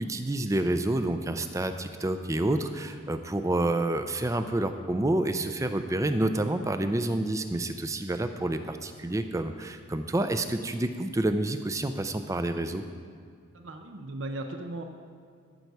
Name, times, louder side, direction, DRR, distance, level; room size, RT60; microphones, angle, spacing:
voice 1, 0.0-12.8, right 1 dB, 15° right, 9 dB, 0.4 m, -28 dB
voice 2, 13.5-14.8, right 2 dB, 70° right, 5 dB, 0.7 m, -37 dB
13.5 x 6.7 x 4.7 m, 2.1 s
head